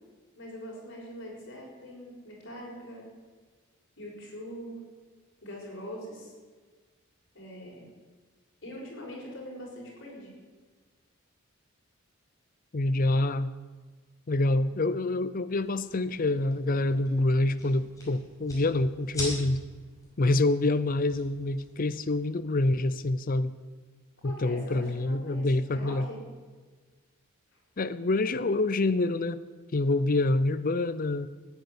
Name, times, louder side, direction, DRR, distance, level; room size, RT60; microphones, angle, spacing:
voice 1, 0.3-3.1 4.0-4.8 5.4-6.3 7.3-7.9 8.6-10.3 24.2-26.2, equal, 55° left, -2 dB, 6.2 m, -42 dB
voice 2, 12.7-13.5 14.3-19.6 20.2-23.5 24.2-26.1 27.8-29.4 29.7-31.3, left 2 dB, 40° left, 12 dB, 0.6 m, -26 dB
sound 1, 15.5-22.3, left 1 dB, 15° left, 5.7 m, -44 dB
15.0 x 9.4 x 9.8 m, 1.4 s
head